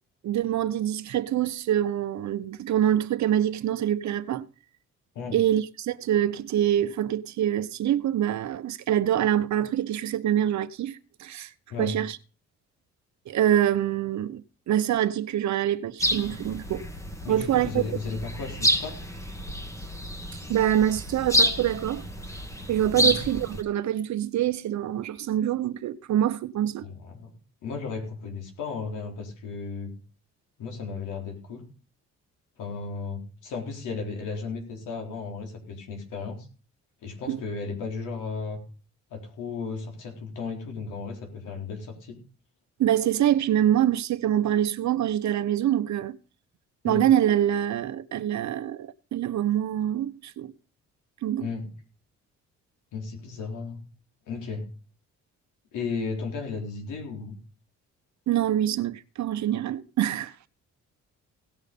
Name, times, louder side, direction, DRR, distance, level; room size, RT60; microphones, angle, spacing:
voice 1, 0.2-4.5 5.3-11.5 11.8-12.2 13.3-16.9 17.3-17.8 20.5-22.0 22.7-26.8 37.3-37.4 42.8-46.2 46.8-50.5 51.2-51.5 58.3-60.3, right 11 dB, 70° right, 1.0 m, -25 dB
sound 1, 16.0-23.6, equal, 10° left, 2.0 m, -29 dB
voice 2, 17.2-19.0 22.9-23.1 26.8-27.3 27.6-30.0 30.6-31.7 32.6-36.5 37.0-38.6 39.1-42.2 46.8-47.1 51.4-51.7 52.9-53.8 54.3-54.7 55.7-57.3, left 4 dB, 90° left, 4.3 m, -34 dB
17.5 x 6.4 x 5.4 m
cardioid pair, 90°, 30 cm